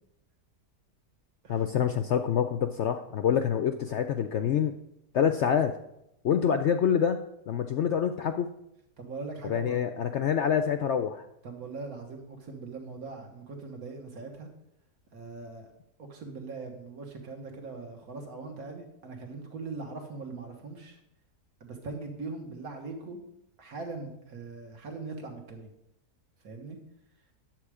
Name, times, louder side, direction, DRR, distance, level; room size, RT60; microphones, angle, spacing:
voice 1, 1.5-4.7 5.1-5.7 6.2-7.2 7.5-8.5 9.4-11.2, left 8 dB, 70° left, 8 dB, 0.6 m, -26 dB
voice 2, 9.0-9.8 11.4-14.5 15.1-15.7 16.0-21.0 21.6-23.3 23.6-25.7 26.4-26.8, right 3 dB, 65° right, 3 dB, 2.0 m, -41 dB
10.5 x 7.7 x 4.9 m, 0.83 s
omnidirectional pair, 1.7 m